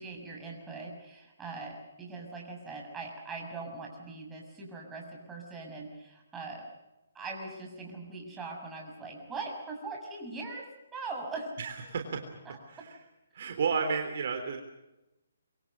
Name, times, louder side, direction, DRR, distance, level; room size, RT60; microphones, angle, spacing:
voice 1, 0.0-6.7 7.1-11.5 12.5-12.8, right 3 dB, 10° right, 0 dB, 6.8 m, -41 dB
voice 2, 11.6-12.2 12.7-13.0 13.3-14.6, right 5 dB, 50° right, 4 dB, 3.5 m, -32 dB
26.0 x 24.0 x 6.9 m, 0.97 s
figure-of-eight pair, 135°, 0 cm